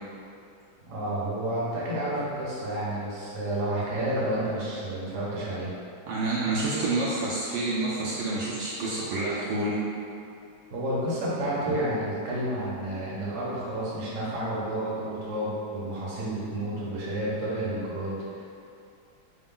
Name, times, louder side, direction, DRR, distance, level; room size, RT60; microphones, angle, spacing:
voice 1, 0.9-5.7 10.7-18.4, right 1 dB, 50° right, -7 dB, 1.0 m, -30 dB
voice 2, 6.1-9.8 11.7-11.8, right 2 dB, 75° right, -7 dB, 1.2 m, -28 dB
3.9 x 2.2 x 3.7 m, 2.5 s
omnidirectional pair, 2.2 m